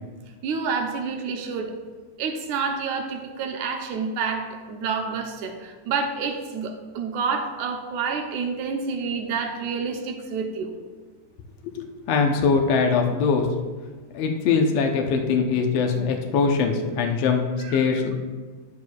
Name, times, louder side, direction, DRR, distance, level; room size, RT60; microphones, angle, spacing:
voice 1, 0.4-1.7 2.2-10.7 17.6-17.8, right 5 dB, 80° right, 3 dB, 2.2 m, -28 dB
voice 2, 11.8-13.5 14.1-17.4 17.7-18.1, left 5 dB, 70° left, 3 dB, 1.8 m, -22 dB
10.5 x 9.4 x 2.3 m, 1.4 s
omnidirectional pair, 3.4 m